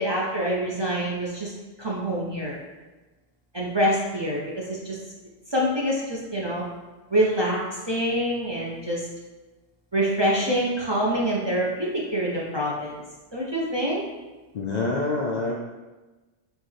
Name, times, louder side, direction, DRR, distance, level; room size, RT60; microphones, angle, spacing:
voice 1, 0.0-1.5 1.8-2.5 3.5-5.0 5.5-6.6 7.1-7.6 7.9-9.1 9.9-13.0 13.3-14.0, equal, 30° right, -5 dB, 0.6 m, -25 dB
voice 2, 14.5-15.5, left 3 dB, 55° left, -2 dB, 0.5 m, -26 dB
6.3 x 2.4 x 3.2 m, 1.2 s
omnidirectional pair, 1.1 m